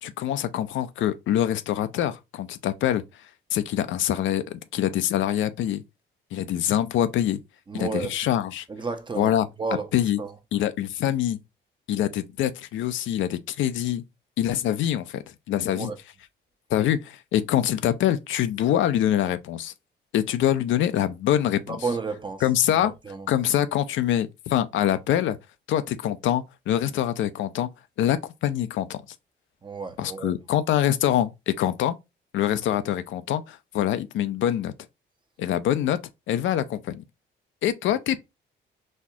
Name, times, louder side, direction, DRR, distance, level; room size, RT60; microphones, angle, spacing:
voice 1, 0.0-3.0 3.5-5.8 6.3-7.4 7.7-8.7 9.1-9.5 9.9-10.2 10.5-11.4 11.9-14.0 14.4-15.9 16.7-19.7 20.1-21.9 22.4-22.9 23.3-25.4 25.7-27.7 28.0-29.0 30.0-32.0 32.3-34.7 35.4-36.0 36.3-37.0 37.6-38.2, left 11 dB, 75° left, 0.5 m, -25 dB
voice 2, 7.7-8.1 8.7-9.3 9.6-9.9 10.2-10.3 15.7-16.0 21.7-22.4 22.7-22.8 23.1-23.3 29.6-30.3, right 4 dB, 25° right, 0.7 m, -31 dB
4.2 x 2.4 x 2.7 m
cardioid pair, 90°, 20 cm